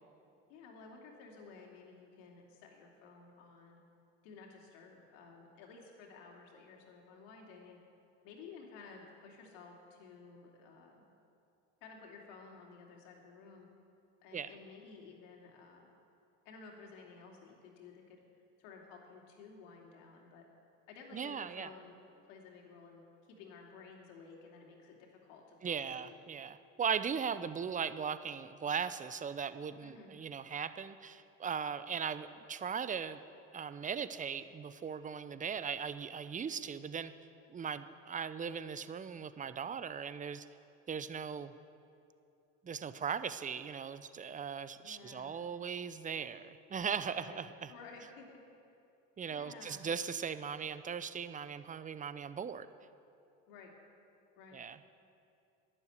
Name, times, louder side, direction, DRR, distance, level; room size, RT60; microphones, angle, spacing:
voice 1, 0.5-3.8 4.2-7.8 8.2-11.1 11.8-13.7 14.2-15.9 16.4-18.2 18.6-20.5 20.9-22.0 22.3-23.0 23.3-26.2 29.8-30.1 44.8-45.4 47.2-48.4 49.3-49.9 53.5-53.7 54.4-54.6, left 4 dB, 75° left, 0 dB, 2.9 m, -54 dB
voice 2, 21.1-21.7 25.6-33.2 33.5-37.1 37.5-40.5 40.9-41.5 42.6-47.7 49.2-52.7 54.5-54.8, right 7 dB, 20° right, 13 dB, 0.7 m, -38 dB
12.0 x 11.0 x 8.1 m, 2.6 s
hypercardioid pair, 80°, 38 cm